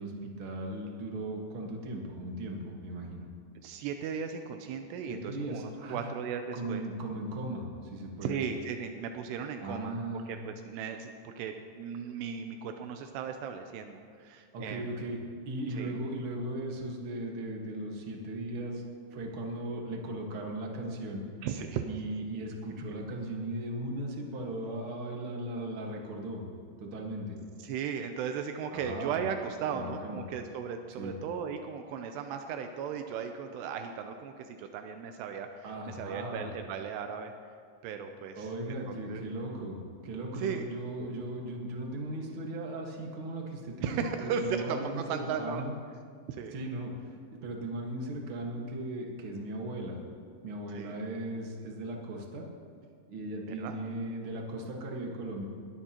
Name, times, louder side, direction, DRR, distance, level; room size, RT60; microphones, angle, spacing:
voice 1, 0.0-3.3 5.1-6.1 6.5-8.4 9.6-10.3 14.5-15.2 15.4-18.8 19.1-21.2 21.9-26.5 26.8-27.4 28.7-29.2 29.7-30.2 31.0-31.1 35.6-36.5 38.4-39.8 40.0-45.7 46.5-46.9 47.4-50.0 50.4-52.5 53.1-55.4, right 1 dB, 55° right, 0 dB, 1.4 m, -37 dB
voice 2, 3.6-6.8 8.2-14.9 15.8-16.0 21.4-21.9 27.6-37.3 37.8-38.8 39.1-39.2 40.3-40.7 43.8-45.6 46.3-46.6 50.8-51.0 53.5-53.8, right 7 dB, 85° right, 6 dB, 2.7 m, -36 dB
21.0 x 14.5 x 2.9 m, 2.2 s
omnidirectional pair, 4.8 m